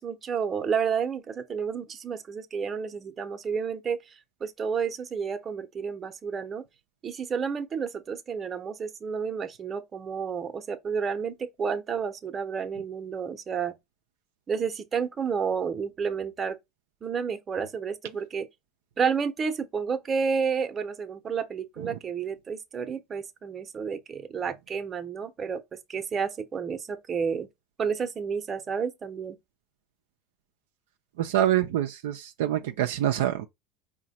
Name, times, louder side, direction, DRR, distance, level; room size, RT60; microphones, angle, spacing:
voice 1, 0.0-4.1 4.4-6.6 7.0-13.7 14.5-16.6 17.0-18.5 19.0-27.5 27.8-29.4, right 6 dB, 35° right, 0.7 m, -30 dB
voice 2, 31.2-33.5, right 12 dB, 75° right, 0.4 m, -26 dB
4.8 x 2.2 x 4.0 m
hypercardioid pair, 80°, 0 cm